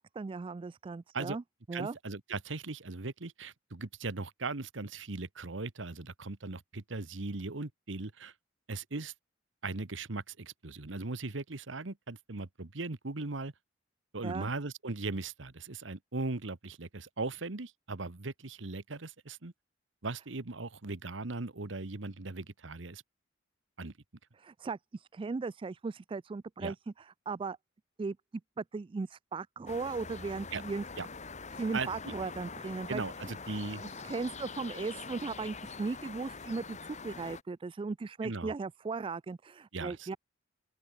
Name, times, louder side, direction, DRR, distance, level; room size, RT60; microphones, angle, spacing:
voice 1, 0.0-1.4 1.7-2.0 14.2-14.5 24.4-26.7 27.3-27.6 28.0-28.2 28.6-30.8 31.5-33.0 34.0-40.2, right 4 dB, 25° right, 0.3 m, -37 dB
voice 2, 1.7-8.3 8.7-9.1 9.6-13.5 14.1-19.5 20.0-23.0 23.8-23.9 26.6-26.7 30.5-30.6 31.0-31.1 31.7-32.1 32.9-33.8 38.2-38.5 39.7-40.2, right 3 dB, 70° right, 1.3 m, -38 dB
sound 1, 29.7-37.4, left 4 dB, 40° left, 2.3 m, -44 dB
open air
head